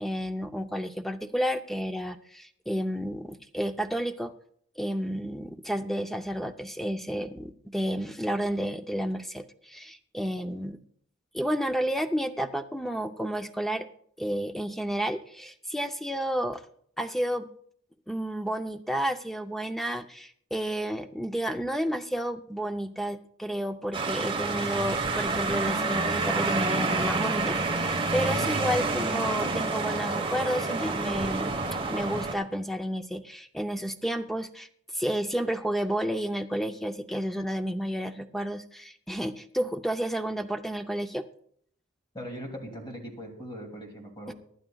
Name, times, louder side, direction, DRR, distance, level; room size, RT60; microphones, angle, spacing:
voice 1, 0.0-4.3 4.8-10.8 11.3-13.9 14.2-16.6 17.0-17.5 18.1-31.6 31.9-34.7 34.9-41.3 44.3-44.4, equal, ahead, 7 dB, 0.5 m, -31 dB
sound 1, 23.9-32.3, right 3 dB, 25° right, 1.2 m, -28 dB
voice 2, 42.1-44.3, equal, 20° left, 2 dB, 2.6 m, -40 dB
24.5 x 10.5 x 2.3 m, 0.65 s
head